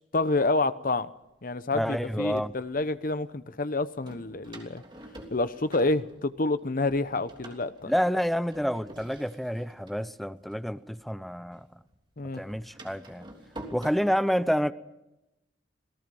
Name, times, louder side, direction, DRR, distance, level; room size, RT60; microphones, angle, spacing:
voice 1, 0.1-1.1 1.4-4.8 5.3-7.9 12.2-12.4, left 2 dB, 50° left, 13 dB, 0.9 m, -28 dB
Door, 0.9-1.0 1.7-2.8 4.0-6.6 6.9-11.4 11.7-13.9, right 1 dB, 25° right, 3.2 m, -48 dB
voice 2, 1.7-2.5 7.9-11.7 12.3-13.3 13.7-14.7, equal, ahead, 12 dB, 0.7 m, -28 dB
28.0 x 18.0 x 5.5 m, 0.93 s
head